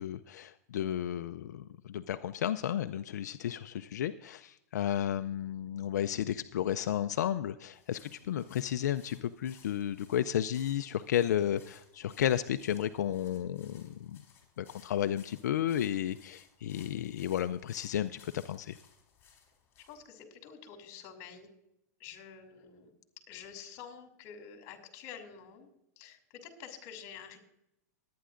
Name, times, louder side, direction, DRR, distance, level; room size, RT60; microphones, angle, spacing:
voice 1, 0.0-14.2 14.6-18.8, left 10 dB, 85° left, 11 dB, 0.4 m, -33 dB
sound 1, 7.7-20.0, left 7 dB, 25° left, 3.7 m, -62 dB
voice 2, 19.9-21.5 22.0-22.9 23.3-25.7 26.0-27.4, left 7 dB, 45° left, 5 dB, 2.7 m, -48 dB
21.5 x 9.4 x 2.5 m, 0.84 s
hypercardioid pair, 130°, 9 cm